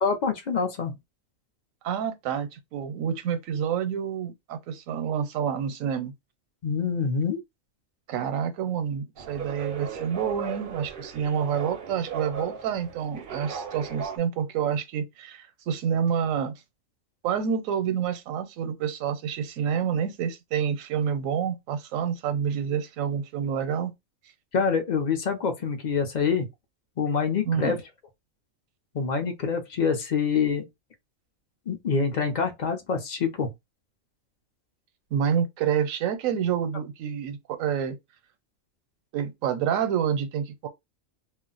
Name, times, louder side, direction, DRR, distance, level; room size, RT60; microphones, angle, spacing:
voice 1, 0.0-0.9 6.6-7.4 24.5-26.5 27.0-27.8 28.9-30.6 31.7-33.5, left 5 dB, 50° left, 0.5 m, -26 dB
voice 2, 1.8-6.1 8.1-16.5 17.2-23.9 27.5-27.8 35.1-38.0 39.1-40.7, right 8 dB, 80° right, 1.0 m, -28 dB
sound 1, 9.2-14.2, right 7 dB, 55° right, 0.6 m, -36 dB
2.4 x 2.1 x 3.8 m
omnidirectional pair, 1.4 m